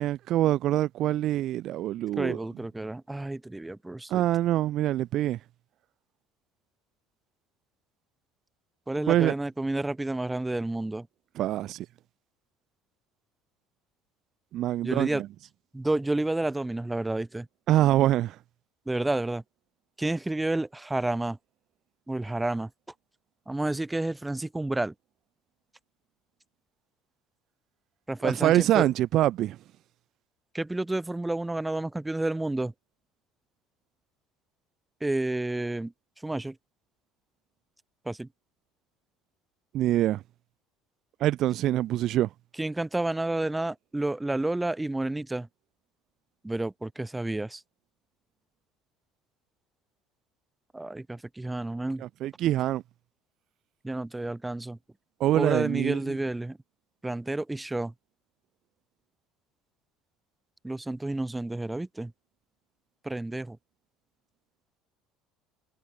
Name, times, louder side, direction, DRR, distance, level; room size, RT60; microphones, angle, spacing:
voice 1, 0.0-2.4 4.1-5.4 9.1-9.3 11.3-11.9 14.5-15.3 17.7-18.4 28.2-29.6 39.7-40.2 41.2-42.3 52.0-52.8 55.2-56.2, right 13 dB, 55° right, 2.5 m, -25 dB
voice 2, 2.2-4.2 8.9-11.1 14.8-15.2 15.7-17.5 18.9-19.4 20.0-21.4 22.1-22.7 23.5-24.9 28.1-28.9 30.5-32.7 35.0-35.9 36.2-36.5 38.0-38.3 42.6-45.5 46.4-47.6 50.7-52.0 53.8-54.8 55.3-56.6 57.0-57.9 60.6-62.1 63.0-63.6, right 2 dB, 10° right, 1.5 m, -30 dB
hypercardioid pair, 65°, 0 cm